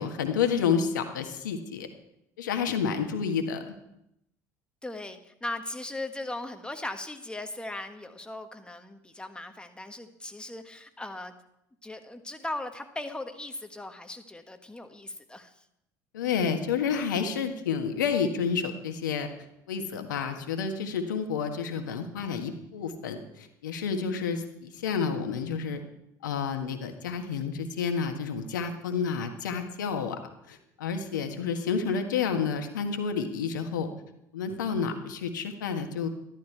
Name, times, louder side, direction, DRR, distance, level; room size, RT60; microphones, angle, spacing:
voice 1, 0.0-1.9 2.4-3.7 16.1-19.3 19.7-25.8 26.2-30.2 30.5-33.9 34.3-36.1, left 6 dB, 80° left, 6 dB, 1.5 m, -30 dB
voice 2, 4.8-11.3 11.8-15.6, left 2 dB, 10° left, 7 dB, 1.5 m, -38 dB
13.5 x 12.5 x 4.6 m, 0.81 s
hypercardioid pair, 70°, 10 cm